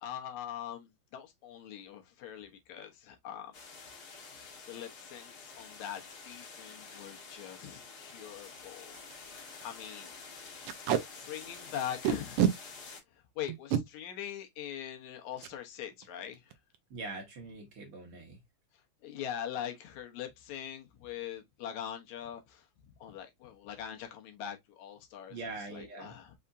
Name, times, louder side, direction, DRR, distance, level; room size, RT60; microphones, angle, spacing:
voice 1, 0.0-3.5 4.1-9.0 9.2-10.1 11.2-12.6 13.4-16.5 19.0-22.7 23.0-25.4 25.7-26.3, left 10 dB, 75° left, 2.2 m, -42 dB
sound 1, 3.5-13.0, left 4 dB, 45° left, 1.4 m, -49 dB
Packing tape duct tape, 7.0-7.2 7.6-7.7 8.0-8.1 8.6-8.7 8.9-9.1 9.5-9.6 10.7-11.0 12.0-12.5 13.5-13.8 15.4-15.6 15.9-16.1 16.3-16.8, right 10 dB, 75° right, 1.3 m, -28 dB
voice 2, 16.9-18.4 25.3-26.2, right 3 dB, 55° right, 2.0 m, -43 dB
5.6 x 3.5 x 2.5 m
omnidirectional pair, 3.3 m